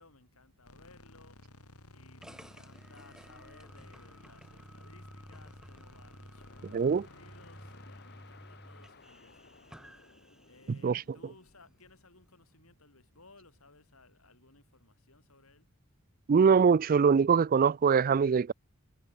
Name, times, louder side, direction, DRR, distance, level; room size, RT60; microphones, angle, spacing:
voice 1, 0.0-1.5 1.9-9.7 10.5-15.7, left 3 dB, 70° left, 7.3 m, -60 dB
sound 1, 0.6-9.8, left 1 dB, 90° left, 5.6 m, -56 dB
sound 2, 2.2-10.9, equal, 5° right, 1.3 m, -53 dB
sound 3, 6.4-13.8, left 4 dB, 50° left, 3.7 m, -60 dB
voice 2, 6.7-7.1 10.8-11.0 16.3-18.5, right 6 dB, 40° right, 0.4 m, -23 dB
head